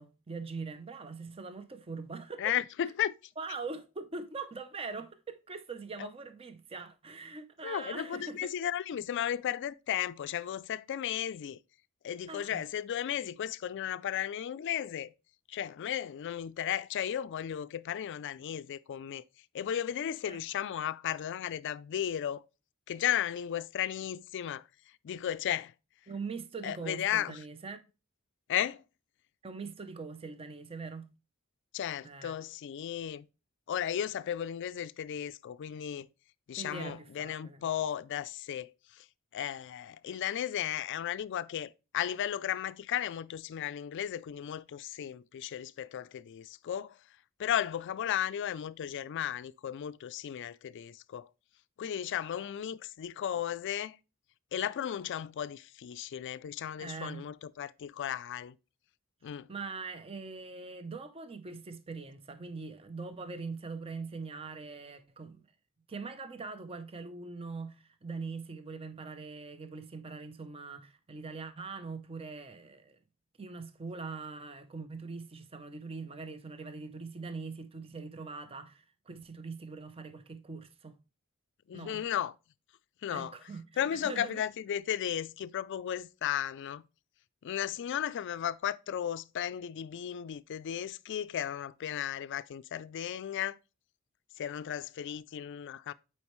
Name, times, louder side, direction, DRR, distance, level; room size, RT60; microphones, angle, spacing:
voice 1, 0.0-2.5 3.4-8.5 12.3-12.6 20.2-20.4 26.1-27.8 29.4-31.1 32.0-32.4 36.6-37.6 56.8-57.2 59.5-65.4 65.9-73.0 73.4-81.0 81.7-82.0 83.1-84.4, right 4 dB, 25° right, 0.6 m, -42 dB
voice 2, 2.4-3.1 6.0-6.1 7.6-11.6 12.0-15.1 15.5-19.2 19.5-22.4 22.9-24.6 25.0-25.7 26.6-27.4 28.5-28.8 31.7-33.3 33.7-36.1 36.5-39.1 39.3-47.0 47.4-51.3 51.8-54.0 54.5-58.6 59.2-59.5 81.7-82.3 83.0-83.3 83.8-86.8 87.4-93.6 94.4-95.9, left 10 dB, 55° left, 0.3 m, -35 dB
8.6 x 4.3 x 3.0 m
head